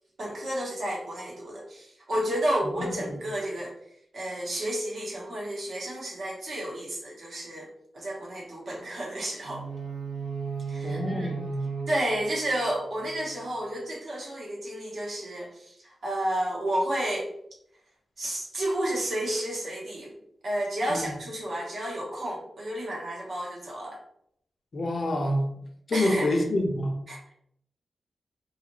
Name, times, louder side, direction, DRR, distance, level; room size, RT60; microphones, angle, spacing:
voice 1, 0.2-3.7 4.1-7.7 7.9-9.6 10.7-11.3 11.9-17.3 18.2-20.1 20.4-24.0 25.9-26.4 27.1-27.2, right 1 dB, 65° right, 1.0 m, -31 dB
sound 1, 9.4-13.5, right 6 dB, 85° right, 0.4 m, -36 dB
voice 2, 10.8-11.6 20.9-21.1 24.7-25.5 25.9-27.0, left 1 dB, 50° left, 0.5 m, -27 dB
2.6 x 2.4 x 2.9 m
wide cardioid pair, 110°, 0 cm